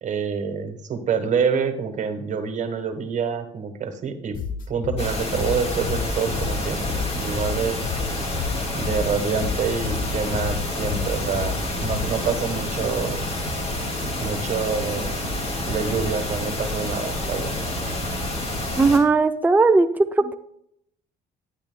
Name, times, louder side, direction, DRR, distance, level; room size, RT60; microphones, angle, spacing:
voice 1, 0.0-4.4 4.7-7.8 8.7-13.2 14.2-15.1 15.6-17.5, right 6 dB, 45° right, 8 dB, 1.3 m, -27 dB
sound 1, 4.3-12.3, left 6 dB, 55° left, 0.8 m, -31 dB
sound 2, 5.0-19.0, left 1 dB, 35° left, 2.2 m, -28 dB
voice 2, 18.8-20.3, right 3 dB, 10° right, 7 dB, 0.5 m, -18 dB
12.5 x 9.5 x 2.2 m, 0.72 s
cardioid pair, 110°, 17 cm